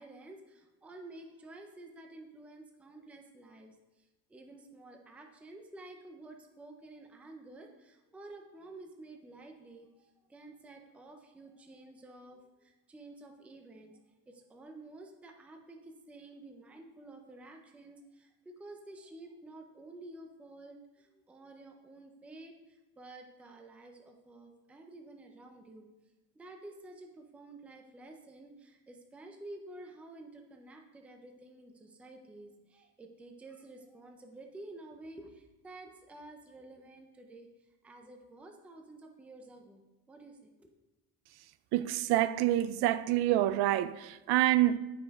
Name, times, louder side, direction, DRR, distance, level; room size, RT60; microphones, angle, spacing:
voice 1, 0.0-13.9 14.3-25.9 26.3-37.5 37.8-40.7, right 2 dB, 5° right, 0.4 m, -51 dB
voice 2, 41.7-44.8, right 14 dB, 65° right, 0.5 m, -27 dB
14.0 x 5.3 x 3.5 m
cardioid pair, 180°, 42 cm